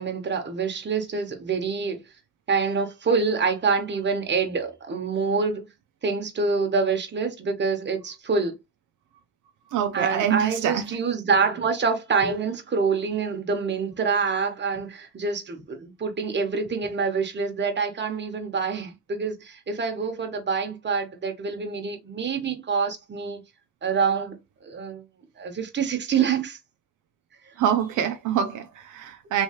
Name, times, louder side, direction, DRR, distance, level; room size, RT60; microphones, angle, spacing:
voice 1, 0.0-2.0 2.5-5.7 6.0-8.6 9.9-23.4 23.8-24.4 24.6-25.0 25.4-26.6, right 5 dB, 35° right, 1.3 m, -26 dB
voice 2, 9.7-11.0 27.6-29.4, right 9 dB, 80° right, 0.6 m, -25 dB
3.3 x 3.1 x 3.0 m
cardioid pair, 90°, 30 cm